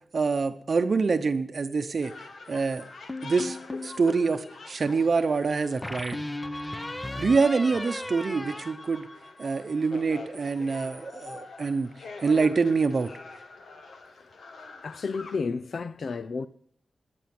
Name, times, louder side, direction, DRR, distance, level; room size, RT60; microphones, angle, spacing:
voice 1, 0.1-2.1 2.5-2.9 3.2-6.2 7.2-9.1 9.4-11.9 12.2-13.1, right 4 dB, 55° right, 0.8 m, -25 dB
sound 1, 2.0-15.4, left 4 dB, 85° left, 2.0 m, -45 dB
sound 2, 3.1-4.0 5.8-9.6, left 1 dB, 15° left, 0.8 m, -36 dB
voice 2, 14.8-16.5, left 4 dB, 65° left, 0.6 m, -32 dB
18.5 x 10.0 x 6.0 m
wide cardioid pair, 110°, 0 cm